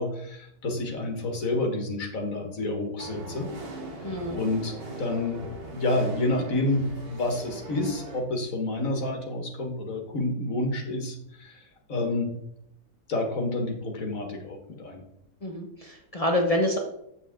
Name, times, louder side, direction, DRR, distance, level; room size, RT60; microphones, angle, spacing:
voice 1, 0.0-3.5 4.3-5.4 5.7-12.3 13.1-15.0, left 2 dB, 75° left, 3 dB, 2.1 m, -29 dB
sound 1, 3.0-8.2, right 1 dB, 45° right, 1.6 m, -40 dB
voice 2, 4.0-4.4 15.4-16.8, left 1 dB, 30° left, 1 dB, 1.0 m, -27 dB
8.0 x 7.6 x 3.7 m, 0.78 s
omnidirectional pair, 1.4 m